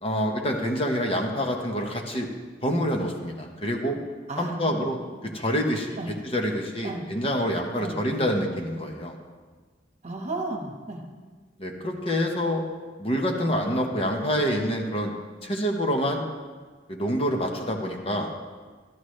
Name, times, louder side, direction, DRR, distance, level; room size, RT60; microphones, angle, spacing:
voice 1, 0.0-2.3 2.6-4.0 4.4-5.0 5.3-6.0 6.2-9.1 11.6-12.6 13.0-15.1 15.4-16.2 16.9-18.3, equal, 30° left, 2 dB, 1.1 m, -26 dB
voice 2, 4.3-4.8 6.0-6.1 6.8-7.1 7.8-8.0 10.0-11.0, right 2 dB, 40° right, 1 dB, 1.3 m, -33 dB
13.0 x 12.0 x 3.2 m, 1.4 s
head